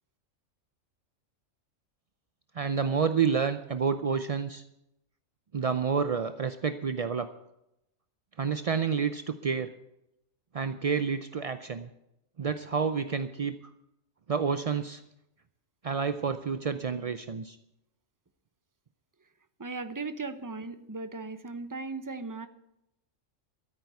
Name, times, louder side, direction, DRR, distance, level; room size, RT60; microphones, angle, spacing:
voice 1, 2.6-4.6 5.5-7.3 8.4-9.7 10.5-11.9 12.4-13.6 14.3-15.0 15.8-17.6, right 6 dB, 55° right, 10 dB, 0.4 m, -29 dB
voice 2, 19.6-22.5, right 3 dB, 20° right, 11 dB, 0.6 m, -37 dB
13.5 x 9.1 x 8.2 m, 0.85 s
omnidirectional pair, 1.4 m